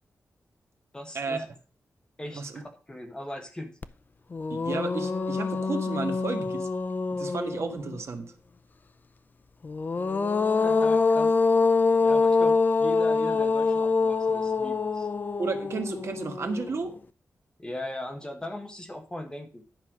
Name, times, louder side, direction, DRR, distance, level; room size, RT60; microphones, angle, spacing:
voice 1, 0.9-1.5 2.2-3.8 10.5-11.3 12.0-15.1 17.6-19.6, left 1 dB, 15° left, 4 dB, 1.5 m, -39 dB
sound 1, 3.8-3.9 4.3-8.0 9.6-16.9, left 4 dB, 35° left, 0.5 m, -25 dB
voice 2, 4.5-6.7 7.1-8.3 15.4-16.9, right 4 dB, 55° right, 6 dB, 1.4 m, -32 dB
10.5 x 5.6 x 6.2 m, 0.38 s
wide cardioid pair, 180°, 6 cm